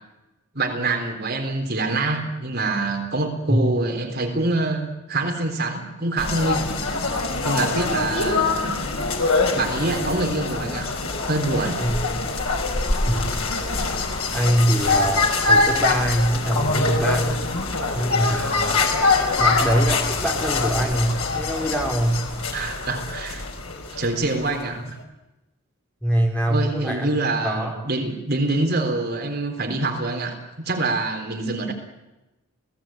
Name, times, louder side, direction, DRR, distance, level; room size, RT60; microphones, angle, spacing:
voice 1, 0.5-6.7 7.4-8.7 9.5-10.9 11.3-11.8 22.5-23.4 23.9-25.0 26.5-30.4 30.7-31.7, right 2 dB, 45° right, 3 dB, 3.7 m, -25 dB
sound 1, 6.2-24.6, left 3 dB, 80° left, 4.8 m, -24 dB
voice 2, 14.3-17.4 17.9-18.8 19.4-22.3 26.0-27.1 27.4-27.7, right 1 dB, 5° left, 0 dB, 4.2 m, -23 dB
30.0 x 17.5 x 9.0 m, 1.0 s
head